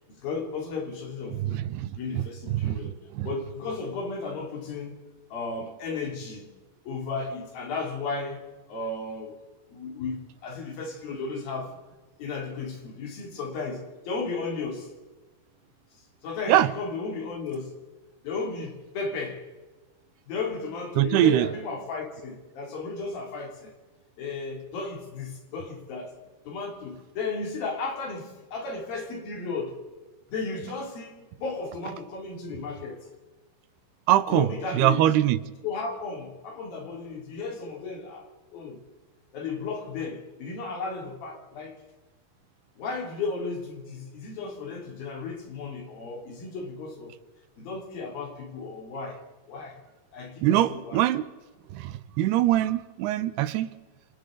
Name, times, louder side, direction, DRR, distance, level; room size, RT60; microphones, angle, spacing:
voice 1, 0.1-1.7 2.0-3.0 3.2-5.0 5.3-6.5 6.9-8.4 8.7-9.4 9.7-11.8 12.2-14.9 16.2-17.8 18.2-19.4 20.3-23.7 24.2-26.2 26.5-29.8 30.3-33.1 34.3-35.1 35.6-38.8 39.3-41.8 42.8-47.2 47.6-49.8 50.1-51.0, left 4 dB, 65° left, 4.5 m, -34 dB
voice 2, 1.3-2.2 2.5-3.3 16.5-16.7 21.0-21.5 34.1-34.5 34.7-35.4 50.4-51.3 51.7-53.7, right 13 dB, 80° right, 2.8 m, -23 dB
28.0 x 27.5 x 3.9 m
omnidirectional pair, 4.7 m